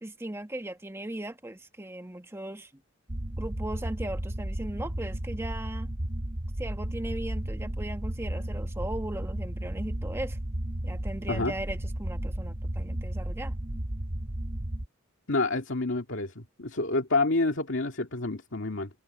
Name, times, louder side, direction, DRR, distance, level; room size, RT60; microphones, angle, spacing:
voice 1, 0.0-2.7 3.4-5.9 6.6-10.4 10.8-13.6, right 1 dB, 15° right, 1.3 m, -38 dB
sound 1, 3.1-14.9, right 1 dB, 35° right, 1.1 m, -33 dB
voice 2, 15.3-18.9, left 2 dB, 70° left, 2.3 m, -28 dB
head